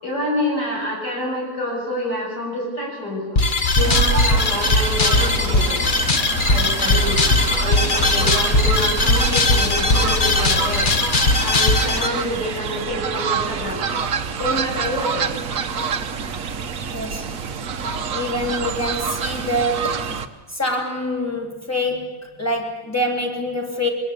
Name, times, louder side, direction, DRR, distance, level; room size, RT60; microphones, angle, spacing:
voice 1, 0.0-3.4 3.8-5.8 6.5-7.2 7.6-10.9 11.4-13.9 14.3-15.3, left 1 dB, 85° left, -1 dB, 7.6 m, -27 dB
sound 1, 3.3-12.1, left 2 dB, 30° left, 1.4 m, -19 dB
Fowl, 3.8-20.3, right 6 dB, 55° right, 1.4 m, -26 dB
voice 2, 16.9-17.2 18.1-20.2 20.5-23.9, left 1 dB, 10° left, 1 dB, 3.6 m, -25 dB
23.5 x 20.5 x 8.6 m, 1.2 s
omnidirectional pair, 1.7 m